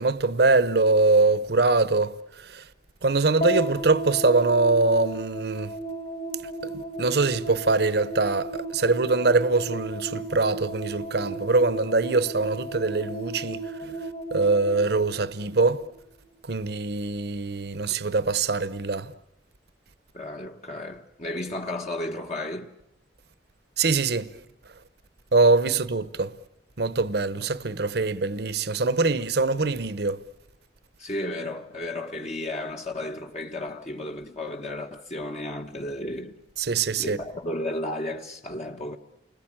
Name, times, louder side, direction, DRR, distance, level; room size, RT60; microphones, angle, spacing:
voice 1, 0.0-2.1 2.4-2.6 3.0-5.7 6.6-6.7 7.0-14.0 14.3-15.8 16.5-19.1 23.8-24.3 25.3-26.3 26.8-30.2 36.6-37.2, right 3 dB, 65° right, 0.9 m, -23 dB
sound 1, 3.4-15.9, right 2 dB, 55° left, 3.9 m, -34 dB
voice 2, 20.1-22.7 31.0-36.4 37.0-39.0, left 1 dB, 40° left, 1.2 m, -33 dB
29.5 x 21.0 x 8.8 m
head